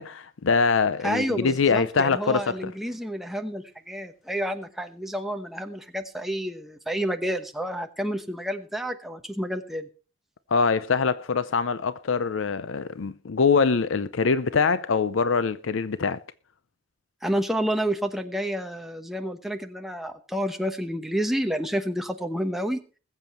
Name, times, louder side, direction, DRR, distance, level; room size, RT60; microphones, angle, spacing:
voice 1, 0.0-2.7 10.5-16.2, left 5 dB, 75° left, 0.6 m, -23 dB
voice 2, 1.0-9.9 17.2-22.8, equal, ahead, 1.0 m, -29 dB
20.5 x 7.6 x 4.3 m
head